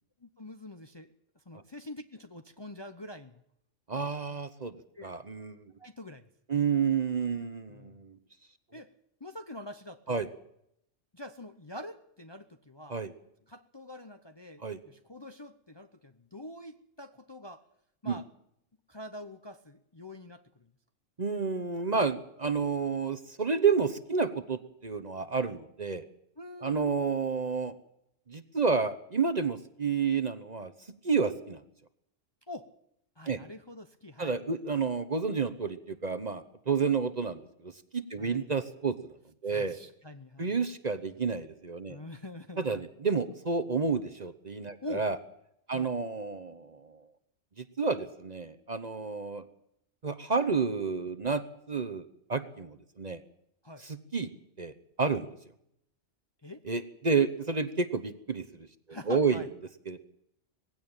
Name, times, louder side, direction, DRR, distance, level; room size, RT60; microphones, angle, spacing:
voice 1, 0.2-1.1 1.5-3.4 4.3-4.4 4.9-5.1 5.8-6.6 7.7-8.0 8.7-8.9 9.2-10.3 11.1-13.0 13.5-17.7 18.0-18.3 18.9-20.7 26.4-26.9 32.5-32.7 33.2-34.4 38.2-38.5 39.5-40.6 41.9-42.8 44.8-45.1 45.7-45.9 53.6-53.9 56.4-56.6 58.9-59.5, left 1 dB, 25° left, 8 dB, 0.8 m, -45 dB
voice 2, 3.9-4.7 5.0-5.7 6.5-8.2 10.1-10.3 12.9-13.1 14.6-14.8 18.0-18.2 21.2-26.0 26.6-27.7 28.3-30.7 31.0-31.6 33.3-33.4 34.2-39.1 39.4-39.8 40.4-42.0 42.6-45.2 45.7-47.0 47.6-49.4 50.0-51.4 51.7-53.2 53.8-54.3 54.6-55.3 56.7-58.7 59.1-59.4 59.9-60.0, right 5 dB, 35° right, 11 dB, 1.0 m, -30 dB
19.0 x 16.0 x 8.9 m, 0.76 s
omnidirectional pair, 1.3 m